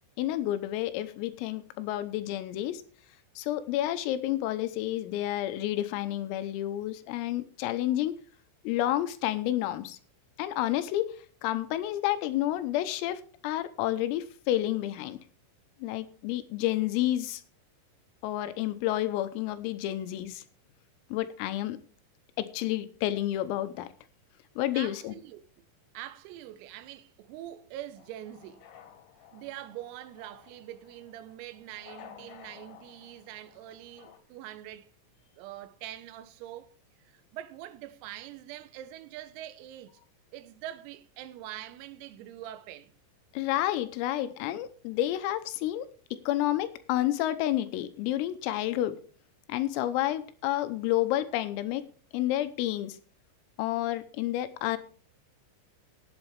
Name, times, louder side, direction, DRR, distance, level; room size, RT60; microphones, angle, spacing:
voice 1, 0.2-2.8 3.4-8.1 8.7-10.0 10.4-11.2 11.4-15.2 15.8-17.4 18.2-20.4 21.1-21.8 22.4-23.9 24.6-25.2 43.3-49.0 49.5-51.8 52.1-53.0 53.6-54.8, left 14 dB, 90° left, 3.6 m, -30 dB
voice 2, 24.7-25.7 26.0-28.7 29.3-34.9 35.4-36.7 37.0-40.0 40.3-42.9, right 13 dB, 85° right, 3.6 m, -44 dB
sound 1, 28.0-34.2, left 8 dB, 70° left, 3.5 m, -54 dB
17.0 x 8.2 x 3.4 m
omnidirectional pair, 6.0 m